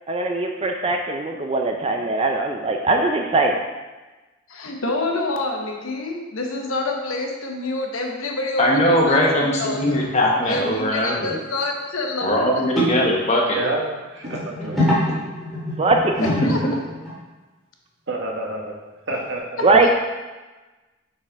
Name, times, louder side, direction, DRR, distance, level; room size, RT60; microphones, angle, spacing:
voice 1, 0.1-3.6 15.8-16.2 19.6-19.9, right 3 dB, 25° right, 3 dB, 0.4 m, -20 dB
voice 2, 4.5-9.8 10.4-12.8 16.2-16.8 19.8-19.9, left 2 dB, 80° left, 1 dB, 1.0 m, -27 dB
voice 3, 8.6-11.4 12.2-13.6 14.8-15.2 16.2-16.5, left 1 dB, 30° left, -2 dB, 1.1 m, -20 dB
sound 1, 9.5-10.0 10.3-10.4 11.2-11.3 11.6-11.7 12.7-12.9 14.2-17.2 19.1-19.2, equal, ahead, 2.0 m, -25 dB
voice 4, 13.5-14.8 18.1-18.7 19.1-19.6, right 2 dB, 55° right, 0 dB, 1.1 m, -28 dB
6.3 x 4.2 x 4.5 m, 1.2 s
head